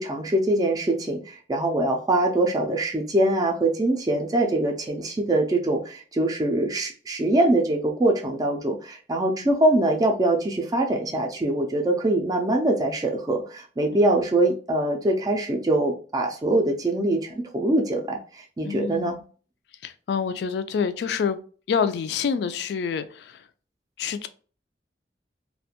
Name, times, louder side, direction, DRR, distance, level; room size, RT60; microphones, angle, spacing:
voice 1, 0.0-19.2, right 1 dB, 20° right, 0.3 m, -23 dB
voice 2, 13.9-14.2 18.6-19.2 19.8-21.4 21.7-23.5 24.0-24.3, left 6 dB, 70° left, 0.3 m, -27 dB
2.4 x 2.2 x 2.7 m
head